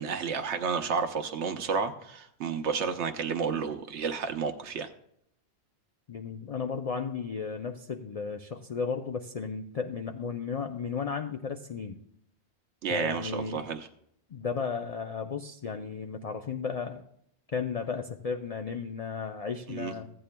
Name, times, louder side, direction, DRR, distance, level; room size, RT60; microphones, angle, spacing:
voice 1, 0.0-4.9 12.8-13.9 19.7-19.9, right 6 dB, 90° right, 6 dB, 1.1 m, -31 dB
voice 2, 6.1-12.0 12.9-13.6 14.3-17.0 17.5-20.1, left 5 dB, 45° left, 5 dB, 0.5 m, -34 dB
15.5 x 8.8 x 2.2 m, 0.71 s
omnidirectional pair, 1.2 m